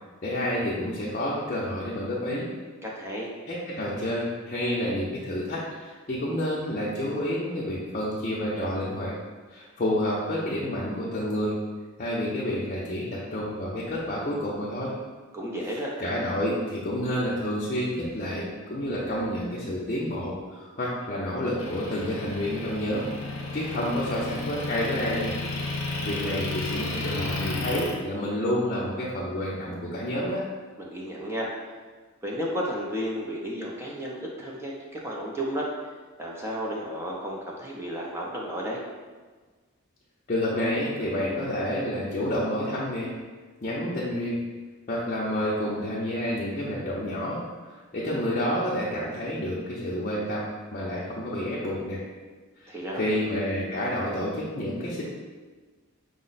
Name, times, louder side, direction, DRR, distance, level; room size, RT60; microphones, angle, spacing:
voice 1, 0.2-2.5 3.5-9.1 9.5-11.6 12.0-14.9 16.0-25.4 26.0-30.5 40.3-43.1 43.6-44.4 44.9-50.5 50.7-52.0 52.6-55.0, left 1 dB, 35° left, -7 dB, 0.6 m, -29 dB
voice 2, 2.8-3.3 15.3-15.9 30.8-31.5 32.2-35.7 36.2-38.8 52.7-53.2, equal, 10° right, -3 dB, 0.5 m, -33 dB
Motor vehicle (road) / Engine, 21.6-27.9, left 2 dB, 80° left, 0.7 m, -33 dB
5.1 x 2.1 x 3.9 m, 1.4 s
head